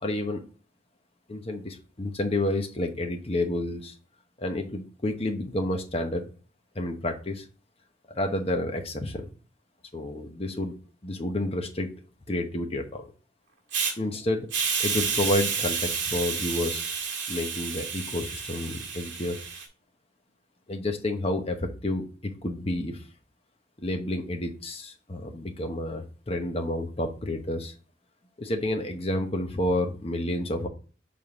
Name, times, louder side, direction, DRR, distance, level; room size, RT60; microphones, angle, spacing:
voice 1, 0.0-0.4 1.3-3.9 4.4-6.2 6.7-7.5 8.1-9.3 9.9-10.8 11.0-11.9 12.3-13.1 14.0-14.5 14.8-16.8 17.3-19.4 20.7-23.1 23.8-27.7 28.4-30.7, left 1 dB, 30° left, 4 dB, 1.0 m, -30 dB
Hiss, 13.7-13.9 14.5-19.6, right 6 dB, 70° right, 1.7 m, -30 dB
6.8 x 3.9 x 3.6 m, 0.37 s
head